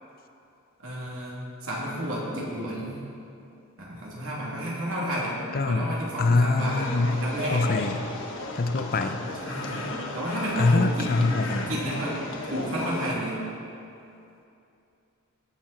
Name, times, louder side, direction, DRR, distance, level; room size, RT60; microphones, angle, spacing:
voice 1, 0.8-3.0 3.8-7.7 9.3-12.1 12.5-13.4, right 1 dB, 70° right, -5 dB, 3.1 m, -32 dB
voice 2, 5.5-5.9 6.2-7.2 7.5-7.9 8.6-9.2 10.6-11.7, left 3 dB, 45° left, 8 dB, 0.6 m, -24 dB
sound 1, 6.6-13.1, left 2 dB, 65° left, 1.2 m, -35 dB
18.0 x 7.2 x 4.4 m, 2.7 s
head